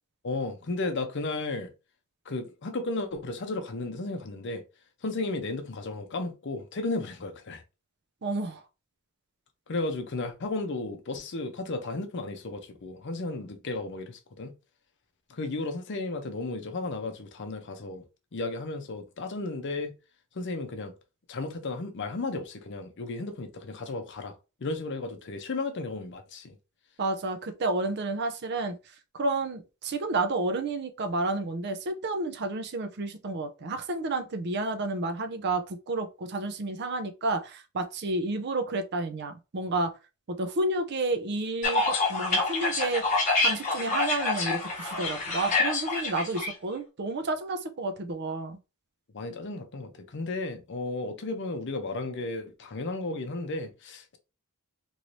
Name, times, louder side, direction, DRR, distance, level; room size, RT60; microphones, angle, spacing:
voice 1, 0.2-1.7 2.3-4.6 5.0-7.6 9.7-14.5 15.3-18.0 18.3-19.9 20.3-20.9 21.3-24.3 24.6-26.6 49.1-54.2, left 2 dB, 55° left, 0.6 m, -34 dB
voice 2, 8.2-8.6 27.0-28.7 29.1-39.9 40.3-43.1 43.4-48.6, right 2 dB, 50° right, 0.5 m, -30 dB
sound 1, 41.6-46.5, left 3 dB, 35° left, 1.1 m, -27 dB
3.1 x 2.6 x 3.1 m
head